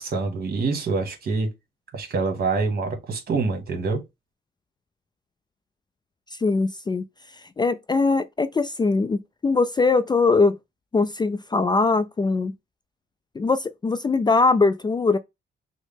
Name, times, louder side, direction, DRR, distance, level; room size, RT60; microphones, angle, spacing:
voice 1, 0.0-1.5 1.9-4.0, right 4 dB, 50° right, 1.6 m, -25 dB
voice 2, 6.3-7.0 7.4-10.6 10.9-12.5 13.4-15.2, left 3 dB, 20° left, 0.4 m, -21 dB
6.2 x 2.1 x 3.5 m
cardioid pair, 90°, 20 cm